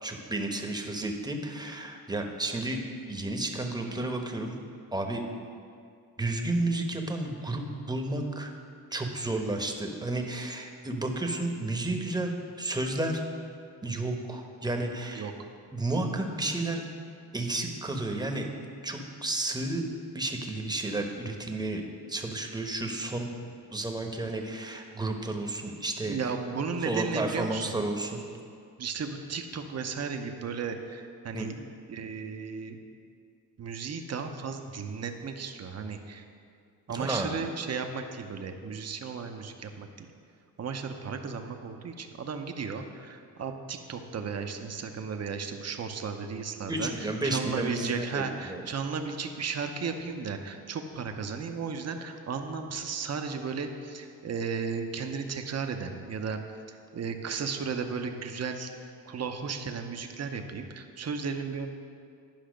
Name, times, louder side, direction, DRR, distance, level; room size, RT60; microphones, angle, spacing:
voice 1, 0.0-2.8 3.1-4.6 4.9-5.2 6.2-8.5 8.9-13.2 13.8-15.3 15.7-16.8 17.3-18.5 18.8-19.8 20.1-21.8 22.1-23.3 23.7-26.2 26.8-28.2 31.3-31.6 36.9-37.3 46.7-48.6, right 2 dB, 10° right, 3 dB, 1.0 m, -32 dB
voice 2, 26.1-27.8 28.8-31.6 31.9-32.8 33.6-36.2 36.9-40.1 40.6-56.4 56.9-61.7, right 5 dB, 40° right, 5 dB, 0.8 m, -35 dB
10.5 x 5.6 x 5.1 m, 2.3 s
cardioid pair, 90°, 39 cm